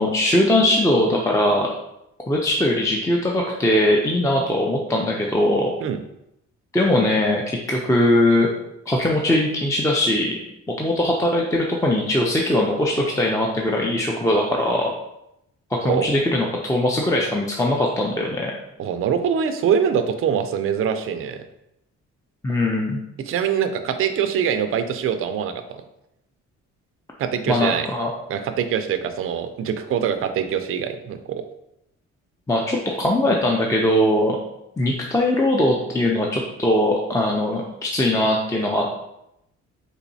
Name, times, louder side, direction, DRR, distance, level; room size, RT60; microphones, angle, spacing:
voice 1, 0.0-1.7 2.3-5.7 6.7-8.5 8.9-10.4 10.8-14.9 15.8-18.5 22.4-23.0 27.5-28.1 32.5-34.4 34.8-38.9, left 1 dB, 10° left, -1 dB, 0.4 m, -20 dB
voice 2, 18.8-21.4 23.3-25.8 27.2-27.9 28.3-31.4, right 8 dB, 45° right, 8 dB, 0.4 m, -23 dB
4.0 x 2.7 x 2.6 m, 0.82 s
cardioid pair, 90°, 30 cm